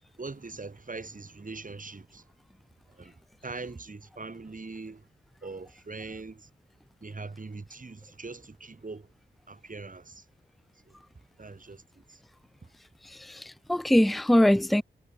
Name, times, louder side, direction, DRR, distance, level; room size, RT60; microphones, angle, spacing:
voice 1, 0.2-2.2 3.0-5.0 5.4-6.5 7.0-9.1 9.5-10.2 11.4-11.8 12.1-12.2, right 3 dB, 45° right, 2.9 m, -41 dB
voice 2, 13.2-14.8, left 1 dB, ahead, 0.5 m, -22 dB
cardioid pair, 45°, 19 cm